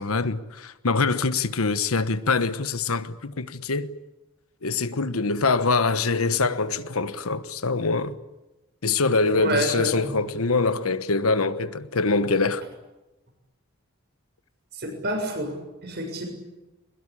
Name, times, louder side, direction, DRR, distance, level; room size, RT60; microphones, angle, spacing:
voice 1, 0.0-3.9 4.6-8.1 8.8-12.7, left 4 dB, 85° left, 1.2 m, -24 dB
voice 2, 9.3-10.1 14.8-15.5 15.8-16.2, right 1 dB, 50° right, 6.8 m, -28 dB
22.0 x 21.5 x 9.9 m
head